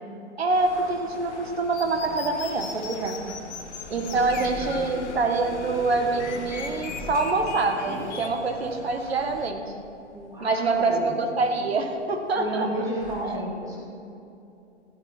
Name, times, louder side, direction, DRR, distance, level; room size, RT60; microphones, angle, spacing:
voice 1, 0.4-3.3 3.9-9.6 10.4-12.7 13.2-13.4, right 3 dB, 60° right, 4 dB, 1.6 m, -25 dB
sound 1, 0.5-9.5, left 3 dB, 75° left, 0.9 m, -42 dB
sound 2, 0.5-13.1, left 2 dB, 20° left, 3.1 m, -46 dB
sound 3, 1.7-8.3, left 5 dB, 40° left, 1.2 m, -40 dB
voice 2, 3.9-4.9 10.1-11.2 12.3-13.8, right 1 dB, 10° right, -4 dB, 2.6 m, -33 dB
14.5 x 10.0 x 4.4 m, 2.7 s
figure-of-eight pair, 115°, 35 cm